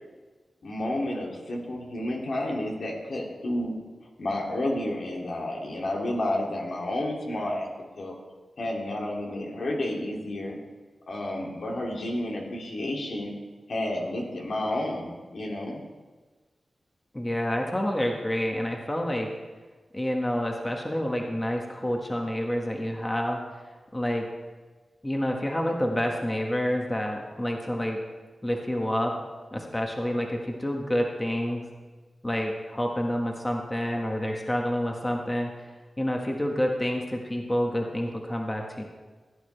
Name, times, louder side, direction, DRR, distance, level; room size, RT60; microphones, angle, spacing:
voice 1, 0.6-3.8 4.2-7.7 8.0-8.2 8.6-10.6 11.1-13.3 13.7-15.8, left 1 dB, 70° left, -1 dB, 2.5 m, -31 dB
voice 2, 17.1-19.3 19.9-23.4 23.9-24.2 25.0-28.0 28.4-29.1 29.5-31.6 32.2-35.5 36.0-38.8, equal, 15° left, 1 dB, 1.4 m, -28 dB
16.5 x 11.0 x 3.3 m, 1.3 s
wide cardioid pair, 90°, 0 cm